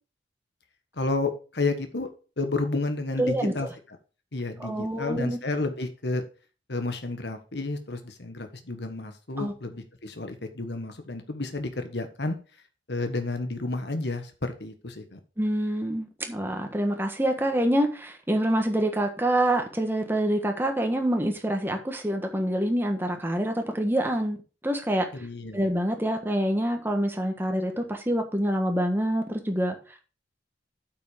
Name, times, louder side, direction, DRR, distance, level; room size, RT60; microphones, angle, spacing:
voice 1, 1.0-2.1 2.4-3.7 4.3-6.2 6.7-12.4 12.9-15.2 25.1-25.6, left 2 dB, 65° left, 1.4 m, -31 dB
voice 2, 3.2-3.5 4.6-5.4 9.4-9.5 15.4-24.4 24.6-25.1 25.5-29.7, right 1 dB, 10° right, 1.4 m, -26 dB
8.6 x 6.1 x 5.0 m
head